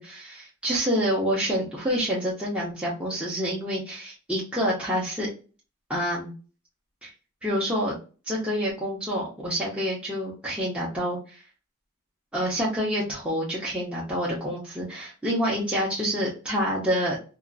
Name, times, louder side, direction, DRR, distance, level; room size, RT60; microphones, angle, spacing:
voice 1, 0.0-5.3 5.9-6.3 7.0-7.1 7.4-7.9 8.3-11.4 12.3-17.4, equal, 5° right, -6 dB, 0.7 m, -27 dB
2.8 x 2.4 x 2.4 m, 0.36 s
head